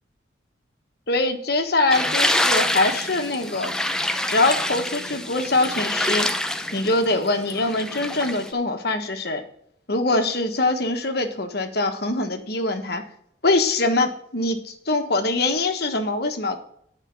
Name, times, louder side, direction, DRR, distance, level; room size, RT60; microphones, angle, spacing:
voice 1, 1.1-3.7 4.3-6.3 6.7-9.4 9.9-13.0 13.4-16.6, left 2 dB, 55° left, 5 dB, 1.3 m, -23 dB
sound 1, 1.9-8.5, left 1 dB, 5° left, 0.6 m, -26 dB
10.0 x 5.1 x 6.9 m, 0.68 s
head